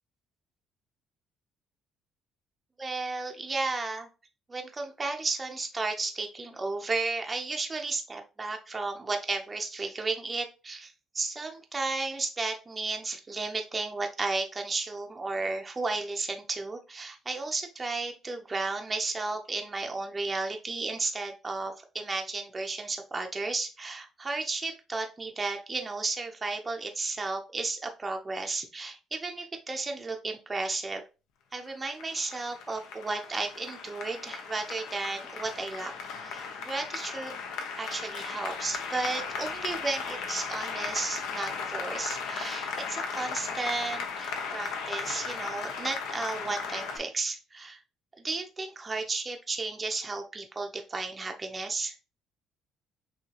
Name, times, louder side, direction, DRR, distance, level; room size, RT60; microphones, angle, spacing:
voice 1, 2.8-4.1 4.5-31.0 31.5-35.9 36.2-37.4 37.8-47.8 48.2-52.0, right 3 dB, 15° right, 3 dB, 0.5 m, -33 dB
Applause, 31.7-47.0, left 5 dB, 90° left, 0.9 m, -36 dB
5.9 x 2.7 x 2.8 m, 0.31 s
cardioid pair, 160°, 0 cm